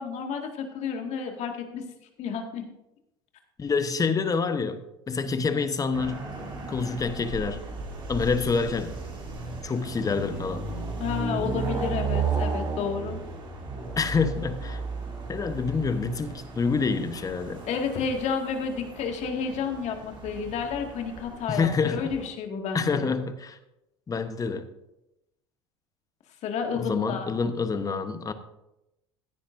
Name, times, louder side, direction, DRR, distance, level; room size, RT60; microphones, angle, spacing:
voice 1, 0.0-1.8 2.2-2.6 11.0-13.2 17.6-23.1 26.4-27.3, left 6 dB, 50° left, 4 dB, 2.0 m, -31 dB
voice 2, 3.6-4.8 5.1-6.3 6.7-7.6 8.1-8.9 9.6-10.7 14.0-14.8 15.3-17.6 21.5-22.1 22.7-23.6 24.1-24.7 26.7-28.3, left 4 dB, 25° left, 10 dB, 1.0 m, -27 dB
sound 1, 5.9-22.3, right 4 dB, 35° right, 2.9 m, -34 dB
15.0 x 10.0 x 2.6 m, 0.90 s
hypercardioid pair, 85°, 14 cm